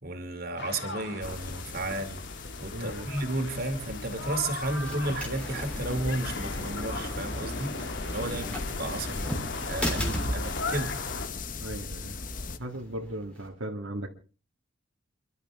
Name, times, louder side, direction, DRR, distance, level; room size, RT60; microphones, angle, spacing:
voice 1, 0.0-2.2 2.6-7.9 8.1-9.3 9.7-11.0, right 2 dB, 45° right, 6 dB, 2.6 m, -33 dB
sound 1, 0.6-11.3, left 3 dB, 55° left, 2.0 m, -38 dB
sound 2, 1.2-12.6, left 4 dB, 40° left, 0.8 m, -39 dB
voice 2, 2.7-3.1 7.7-7.9 8.2-8.4 11.6-12.2 12.6-14.1, right 1 dB, 75° right, 2 dB, 2.0 m, -37 dB
sound 3, 4.4-13.5, equal, 5° left, 3.4 m, -38 dB
28.5 x 12.0 x 3.6 m, 0.36 s
head